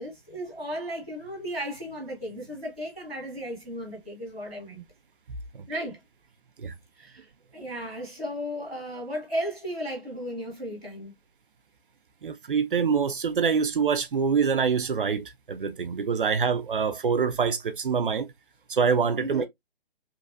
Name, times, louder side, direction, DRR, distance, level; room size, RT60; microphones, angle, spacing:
voice 1, 0.0-4.8 5.7-6.0 7.0-7.3 7.5-11.1 19.2-19.5, equal, 5° left, 0.5 m, -35 dB
voice 2, 12.2-18.3 18.7-19.5, right 6 dB, 60° right, 0.5 m, -25 dB
2.9 x 2.2 x 2.5 m
figure-of-eight pair, 140°, 31 cm